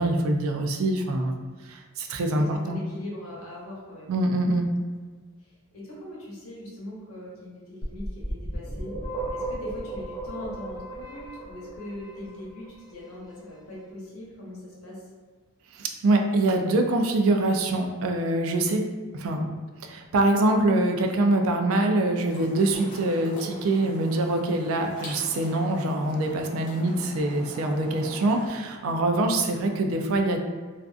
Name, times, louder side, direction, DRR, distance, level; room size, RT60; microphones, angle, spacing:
voice 1, 0.0-1.4 1.7-2.8 4.1-4.7 15.7-18.8 19.1-30.4, right 2 dB, 70° right, 4 dB, 0.3 m, -24 dB
voice 2, 2.4-4.1 5.7-8.9 9.3-15.0 27.2-27.3, left 1 dB, 80° left, -5 dB, 0.9 m, -40 dB
sound 1, 7.8-12.7, right 2 dB, 15° left, 0.5 m, -35 dB
sound 2, 22.3-28.5, equal, 40° left, 1.0 m, -42 dB
2.4 x 2.4 x 2.3 m, 1.5 s
head